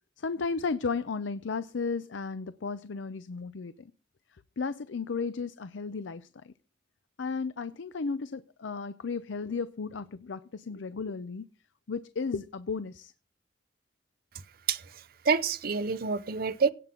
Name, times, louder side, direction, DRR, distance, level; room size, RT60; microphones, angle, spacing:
voice 1, 0.2-3.9 4.6-6.5 7.2-11.5 11.9-13.1, left 4 dB, 70° left, 0.5 m, -34 dB
voice 2, 14.7-16.7, right 5 dB, 50° right, 0.7 m, -28 dB
17.0 x 5.9 x 3.8 m
head